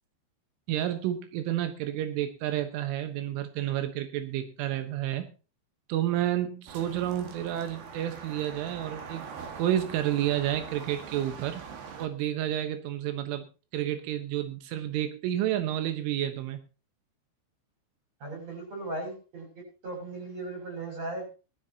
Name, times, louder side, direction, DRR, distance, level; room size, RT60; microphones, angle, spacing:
voice 1, 0.7-5.3 5.9-9.3 9.6-11.6 12.0-13.5 13.7-16.6, right 12 dB, 90° right, 8 dB, 3.7 m, -30 dB
sound 1, 6.7-12.1, right 6 dB, 60° right, 3.5 m, -43 dB
voice 2, 18.2-21.3, right 2 dB, 35° right, 1 dB, 7.9 m, -37 dB
20.0 x 13.0 x 2.9 m, 0.33 s
omnidirectional pair, 5.4 m